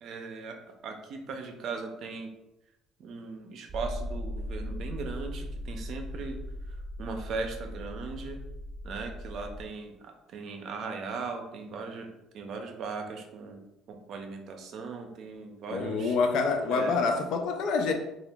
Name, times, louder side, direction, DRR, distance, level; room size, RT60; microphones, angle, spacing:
voice 1, 0.0-2.3 3.0-6.4 7.0-8.4 8.8-12.1 12.3-13.6 13.9-16.1 16.7-16.9, right 4 dB, 55° right, 4 dB, 0.5 m, -38 dB
sound 1, 3.7-9.6, left 1 dB, 10° right, 0.8 m, -38 dB
voice 2, 15.7-17.9, left 4 dB, 65° left, 5 dB, 0.4 m, -27 dB
2.9 x 2.4 x 3.4 m, 0.92 s
cardioid pair, 130°, 0 cm